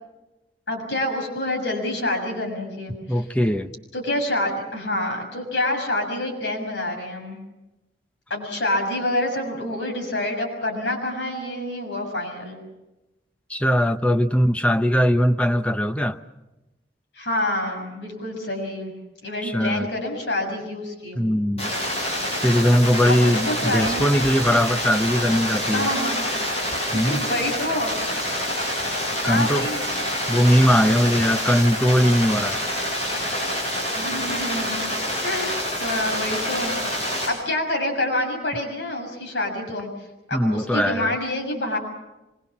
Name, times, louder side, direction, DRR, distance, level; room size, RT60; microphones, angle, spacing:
voice 1, 0.7-3.2 3.9-7.4 8.3-12.6 17.1-18.9 19.2-21.2 23.0-24.1 25.7-26.2 26.9-27.9 29.1-29.9 34.0-34.8 35.2-36.7 37.3-39.9 40.3-41.8, left 1 dB, 85° left, 6.6 m, -27 dB
voice 2, 3.1-3.7 13.5-16.2 19.4-19.9 21.2-21.7 22.4-25.9 26.9-27.2 29.2-29.7 30.3-32.6 40.3-41.1, equal, 5° left, 0.8 m, -20 dB
sound 1, 21.6-37.3, equal, 35° left, 7.5 m, -27 dB
25.5 x 22.5 x 7.3 m
head